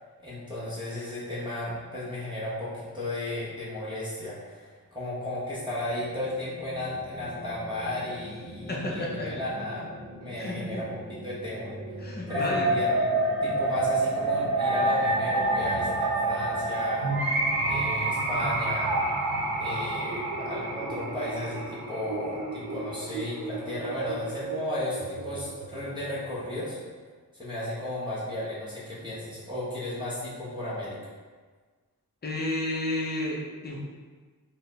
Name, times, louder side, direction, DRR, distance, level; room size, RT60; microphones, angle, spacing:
voice 1, 0.2-9.9 10.2-11.7 12.3-12.9 13.4-17.1 17.6-19.1 19.6-26.8 27.3-31.0, left 1 dB, 15° right, -9 dB, 0.7 m, -34 dB
sound 1, 5.4-20.8, equal, 5° left, 1.1 m, -43 dB
voice 2, 8.7-9.4 10.4-10.8 12.0-12.7 32.2-33.8, left 1 dB, 30° left, -3 dB, 0.6 m, -31 dB
sound 2, 12.3-26.3, right 2 dB, 80° right, 0.7 m, -28 dB
3.3 x 2.1 x 3.9 m, 1.5 s
wide cardioid pair, 170°, 36 cm